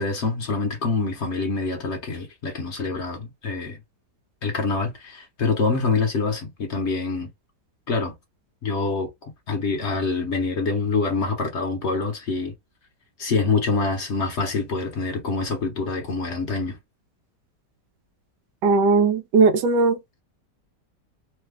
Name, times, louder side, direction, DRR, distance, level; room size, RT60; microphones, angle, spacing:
voice 1, 0.0-3.8 4.4-7.3 7.9-8.1 8.6-12.5 13.2-16.8, left 4 dB, 50° left, 0.9 m, -25 dB
voice 2, 18.6-20.2, right 4 dB, 90° right, 1.3 m, -19 dB
3.2 x 2.2 x 3.4 m
omnidirectional pair, 1.8 m